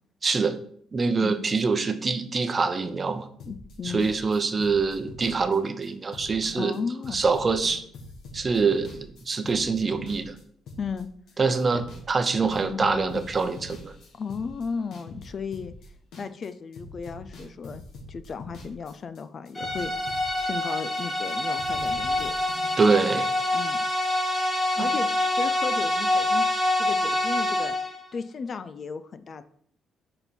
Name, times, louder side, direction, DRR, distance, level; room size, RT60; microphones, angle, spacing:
voice 1, 0.2-0.6 0.9-3.3 3.8-6.7 7.1-7.8 8.3-10.3 11.4-13.9 22.8-23.3 24.8-24.9, right 4 dB, 35° right, 9 dB, 0.8 m, -25 dB
sound 1, 3.4-11.3 11.6-12.1 12.3-16.5 16.7-21.3 21.6-22.8, left 2 dB, 75° left, 1.7 m, -44 dB
voice 2, 3.4-4.1 6.5-7.2 10.8-11.1 11.7-11.8 12.4-13.2 14.1-15.7 16.2-17.8 18.1-22.3 23.5-23.8 24.8-26.5 26.8-27.7 28.1-29.4, left 5 dB, 50° left, 12 dB, 0.5 m, -35 dB
sound 2, 19.6-28.0, left 1 dB, 5° left, 1.5 m, -26 dB
6.5 x 4.5 x 5.3 m, 0.63 s
cardioid pair, 90°, 0 cm